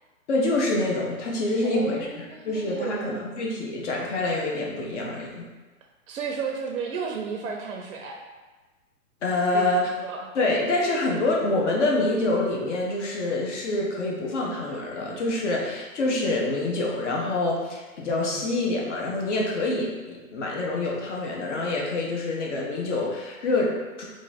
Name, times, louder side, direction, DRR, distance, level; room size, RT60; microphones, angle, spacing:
voice 1, 0.3-2.1 2.4-5.5 9.2-9.9 10.3-24.0, left 2 dB, 55° left, -2 dB, 0.9 m, -26 dB
voice 2, 1.6-3.3 6.1-8.2 9.5-9.7 10.0-10.3, right 5 dB, 65° right, 0 dB, 0.6 m, -33 dB
3.1 x 2.4 x 4.0 m, 1.3 s
hypercardioid pair, 135°, 43 cm